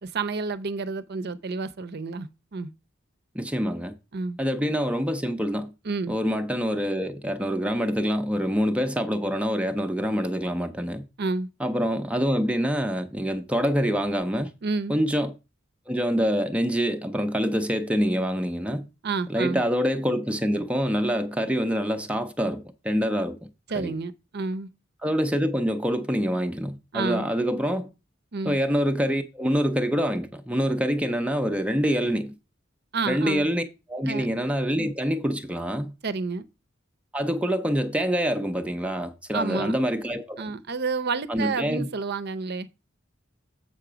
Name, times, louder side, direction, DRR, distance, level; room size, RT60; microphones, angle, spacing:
voice 1, 0.0-2.7 4.1-4.4 5.8-6.1 11.2-11.5 14.6-15.0 19.0-19.6 23.7-24.7 26.9-27.3 28.3-28.6 32.9-33.5 34.1-34.3 36.0-36.4 39.3-39.7 40.4-42.8, right 4 dB, 55° right, 0.6 m, -30 dB
voice 2, 3.3-4.0 4.4-5.7 6.1-11.0 11.6-14.5 14.9-15.3 15.9-18.9 19.3-23.4 23.7-23.9 25.0-27.9 28.4-32.3 33.1-33.6 33.9-35.9 37.1-40.5 41.3-41.9, equal, 5° right, 0.5 m, -26 dB
7.6 x 5.8 x 5.0 m
head